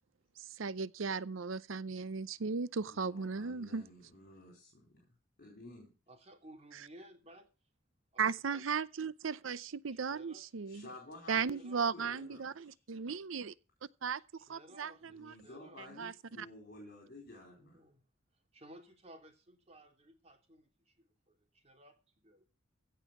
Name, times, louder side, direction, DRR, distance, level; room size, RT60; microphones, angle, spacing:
voice 1, 0.6-3.8 8.2-10.9 11.3-13.5 14.0-14.2 14.5-15.3 16.0-16.5, right 5 dB, 85° right, 0.6 m, -36 dB
voice 2, 2.8-5.1 5.4-5.9 10.7-12.6 15.0-17.8, left 2 dB, 50° left, 4.3 m, -53 dB
voice 3, 6.1-7.5 8.1-8.6 9.9-10.4 11.3-11.9 14.5-15.9 17.6-18.0 18.5-20.4 21.5-22.4, right 1 dB, 30° right, 3.0 m, -57 dB
16.5 x 5.6 x 7.3 m
head